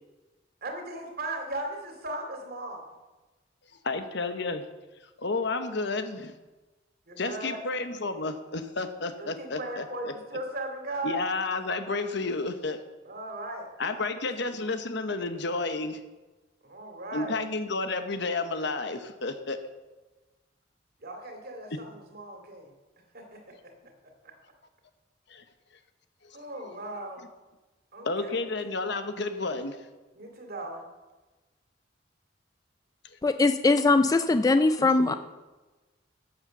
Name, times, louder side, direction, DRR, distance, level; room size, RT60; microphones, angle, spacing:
voice 1, 0.6-2.9 7.1-7.6 9.2-11.2 13.0-14.3 16.6-17.4 21.0-22.7 23.1-23.4 26.3-27.2 27.9-28.4 30.1-30.8, right 1 dB, 55° right, 3 dB, 2.4 m, -37 dB
voice 2, 3.8-4.6 5.2-6.3 7.2-10.1 11.0-12.8 13.8-16.0 17.1-19.6 21.7-21.8 25.3-25.4 26.2-26.4 28.0-29.8 34.8-35.2, left 3 dB, 65° left, 8 dB, 1.0 m, -31 dB
voice 3, 33.2-35.1, left 3 dB, 20° left, 9 dB, 0.3 m, -21 dB
11.5 x 7.6 x 6.8 m, 1.2 s
head